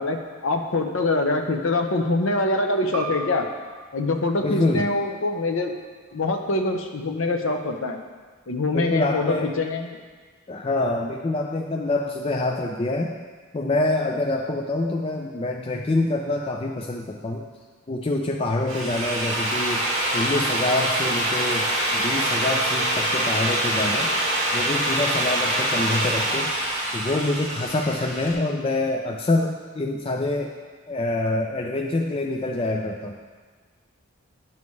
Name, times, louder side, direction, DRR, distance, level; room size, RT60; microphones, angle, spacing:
voice 1, 0.0-3.5 3.9-5.7 6.1-8.0 8.5-10.0, left 2 dB, 65° left, 5 dB, 0.8 m, -24 dB
sound 1, 2.9-8.1, right 2 dB, 90° right, 1.1 m, -40 dB
voice 2, 4.4-4.8 8.7-9.5 10.5-13.1 13.5-17.4 17.9-19.8 20.1-21.7 21.9-24.1 24.5-26.5 26.9-30.5 30.9-33.2, left 2 dB, 25° left, 1 dB, 0.4 m, -26 dB
Drill, 18.5-28.3, right 1 dB, 55° right, 2.2 m, -25 dB
10.5 x 7.1 x 3.2 m, 1.5 s
head